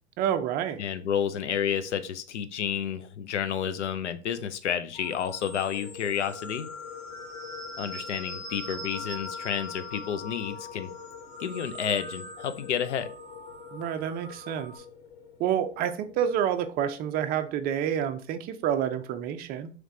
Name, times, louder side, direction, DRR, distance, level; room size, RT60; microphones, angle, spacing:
voice 1, 0.2-0.8 13.7-14.8 15.4-19.7, right 9 dB, 30° right, 8 dB, 0.4 m, -28 dB
voice 2, 0.8-6.7 7.8-10.9 11.4-13.1, left 8 dB, 85° left, 11 dB, 0.6 m, -30 dB
sound 1, 4.9-14.8, left 2 dB, 60° left, 1.5 m, -42 dB
sound 2, 5.7-17.4, left 8 dB, 30° left, 0.7 m, -47 dB
3.3 x 3.2 x 3.7 m, 0.40 s
hypercardioid pair, 110°, 34 cm